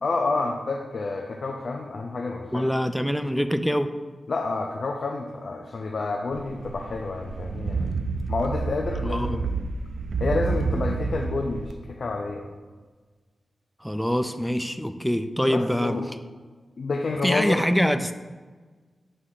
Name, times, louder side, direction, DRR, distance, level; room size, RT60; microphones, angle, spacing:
voice 1, 0.0-2.7 4.3-7.9 8.3-9.6 10.2-12.5 15.4-16.1 16.8-17.6, left 3 dB, 55° left, 1 dB, 0.5 m, -29 dB
voice 2, 2.5-3.9 9.1-9.4 13.8-16.0 17.2-18.2, equal, ahead, 9 dB, 0.3 m, -24 dB
sound 1, 6.3-11.7, right 4 dB, 80° right, 0.4 m, -29 dB
6.4 x 3.3 x 5.6 m, 1.4 s
wide cardioid pair, 120°, 0 cm